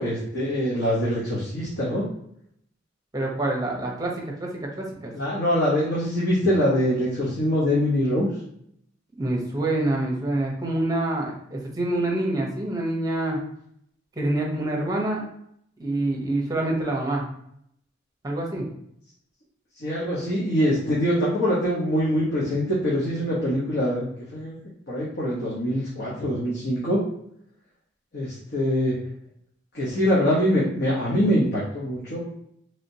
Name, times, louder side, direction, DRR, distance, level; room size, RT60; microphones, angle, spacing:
voice 1, 0.0-2.0 5.1-8.3 19.8-24.6 24.9-27.0 28.1-29.0 29.7-32.4, equal, 55° left, -8 dB, 0.9 m, -24 dB
voice 2, 3.1-5.1 9.2-13.4 14.2-15.2 15.8-17.2 18.2-18.6, right 1 dB, 20° right, -1 dB, 0.8 m, -26 dB
3.2 x 2.8 x 2.7 m, 0.71 s
head